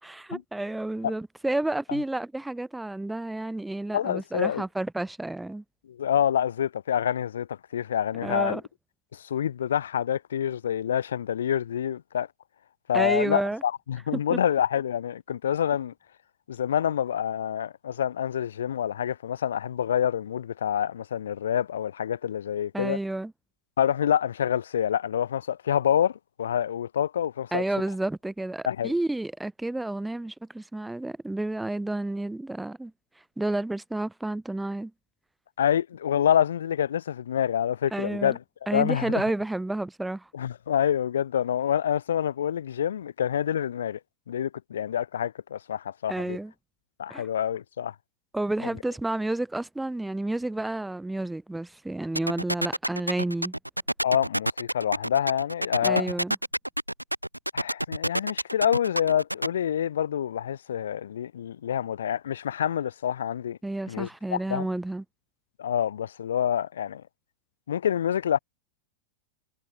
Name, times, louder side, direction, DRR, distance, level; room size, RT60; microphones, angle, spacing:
voice 1, 0.0-5.6 8.2-8.6 12.9-13.6 14.1-14.4 22.7-23.3 27.5-32.9 33.4-34.9 37.9-38.4 38.7-40.3 46.1-46.5 47.1-47.3 48.3-53.5 55.8-56.4 63.6-65.0, right 2 dB, 5° right, 2.7 m, -30 dB
voice 2, 3.9-4.6 5.9-8.6 9.1-12.3 12.9-15.9 16.5-23.0 23.8-27.6 28.7-28.9 35.6-38.4 38.7-39.2 40.3-44.0 44.3-46.4 47.0-47.9 54.0-56.1 57.5-63.6 63.9-64.7 65.6-67.0 67.7-68.4, left 9 dB, 65° left, 1.2 m, -27 dB
sound 1, 52.2-59.5, right 1 dB, 90° right, 0.6 m, -27 dB
figure-of-eight pair, 90°, 0 cm